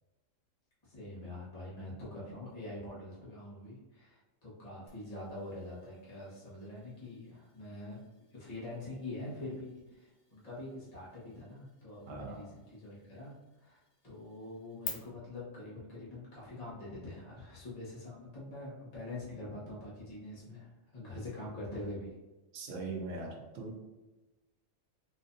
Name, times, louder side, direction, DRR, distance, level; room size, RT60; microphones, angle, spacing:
voice 1, 0.8-8.0 8.3-22.2, left 1 dB, 30° left, -7 dB, 1.2 m, -45 dB
sound 1, 4.9-14.9, left 5 dB, 45° left, 0.5 m, -53 dB
voice 2, 12.1-12.4 22.5-23.8, right 3 dB, 65° right, 1 dB, 1.0 m, -40 dB
4.2 x 2.6 x 2.6 m, 1.1 s
omnidirectional pair, 1.4 m